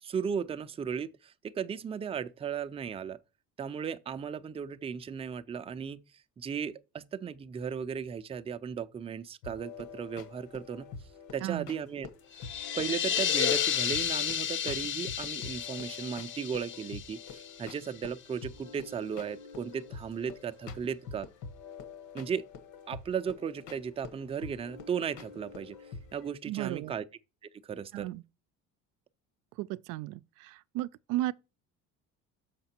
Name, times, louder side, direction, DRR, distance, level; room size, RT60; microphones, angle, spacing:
voice 1, 0.0-3.2 3.6-6.0 6.4-10.9 11.3-12.1 12.7-21.3 22.1-22.5 22.9-25.8 26.1-27.0 27.6-28.1, right 7 dB, 20° right, 0.4 m, -36 dB
sound 1, 9.4-26.3, left 5 dB, 70° left, 1.4 m, -47 dB
sound 2, 12.3-18.0, left 9 dB, 40° left, 0.6 m, -32 dB
voice 2, 26.5-26.9 27.9-28.2 29.6-31.3, right 16 dB, 85° right, 0.5 m, -34 dB
6.7 x 5.7 x 4.3 m
cardioid pair, 140°, 31 cm